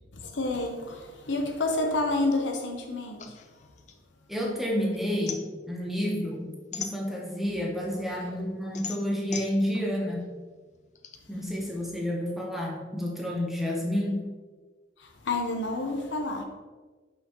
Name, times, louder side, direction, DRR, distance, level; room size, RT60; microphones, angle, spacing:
voice 1, 0.1-3.4 7.8-8.4 15.0-16.4, left 2 dB, 90° left, 0.9 m, -30 dB
sound 1, 3.2-4.7 5.0-7.5 8.0-11.2, left 6 dB, 40° left, 0.4 m, -40 dB
voice 2, 4.3-10.3 11.3-14.2, equal, ahead, 1.0 m, -30 dB
6.0 x 5.6 x 3.0 m
head